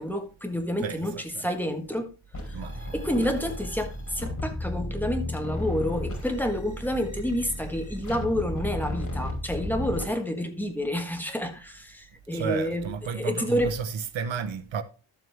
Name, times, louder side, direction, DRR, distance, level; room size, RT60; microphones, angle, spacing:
voice 1, 0.0-2.1 2.4-2.6 2.9-13.7, equal, 5° left, 1.4 m, -29 dB
sound 1, 2.3-10.0, left 1 dB, 40° left, 3.6 m, -34 dB
voice 2, 2.5-3.3 12.3-14.8, right 6 dB, 75° right, 1.0 m, -32 dB
12.0 x 7.4 x 3.5 m
wide cardioid pair, 155°, 47 cm